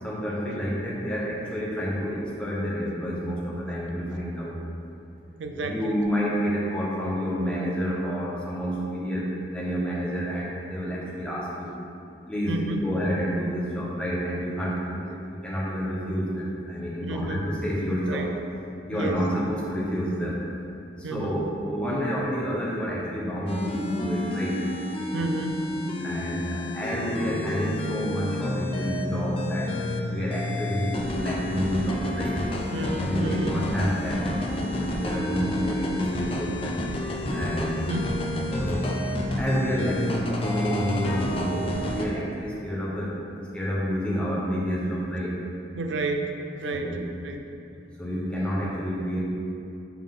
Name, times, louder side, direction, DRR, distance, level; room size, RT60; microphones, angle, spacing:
voice 1, 0.0-4.6 5.5-11.8 12.3-18.3 18.9-20.4 21.0-24.6 26.0-32.4 33.0-36.8 37.3-37.8 38.6-38.9 39.4-45.4 46.7-47.1 48.0-49.2, equal, 5° left, -6 dB, 0.9 m, -29 dB
voice 2, 5.4-6.0 12.5-12.8 17.0-17.5 18.1-18.3 18.9-19.2 21.0-21.4 25.1-25.7 32.7-33.6 37.9-38.2 45.7-46.9 47.2-47.4, right 2 dB, 80° right, 4 dB, 0.5 m, -31 dB
sound 1, 23.5-42.1, left 1 dB, 30° left, 0.4 m, -30 dB
6.9 x 3.7 x 3.7 m, 2.6 s
head